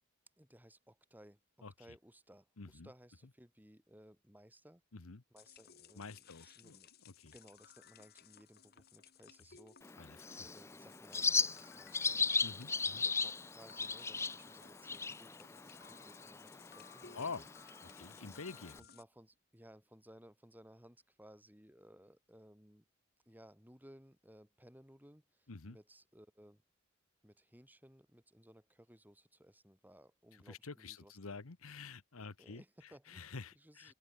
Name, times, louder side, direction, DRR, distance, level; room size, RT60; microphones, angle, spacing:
voice 1, 0.4-4.8 5.3-6.1 6.4-6.9 7.3-17.5 18.8-22.8 23.3-26.6 27.2-31.1 32.2-33.9, equal, 10° right, 5.8 m, -61 dB
voice 2, 2.6-2.9 4.9-5.2 5.9-6.8 7.0-7.3 10.0-10.5 12.4-13.0 17.1-17.4 17.9-18.9 25.5-25.8 30.3-33.9, left 4 dB, 80° left, 1.1 m, -48 dB
sound 1, 5.4-19.0, left 8 dB, 45° left, 1.7 m, -60 dB
Bird, 9.8-18.8, left 4 dB, 15° left, 0.4 m, -38 dB
open air
head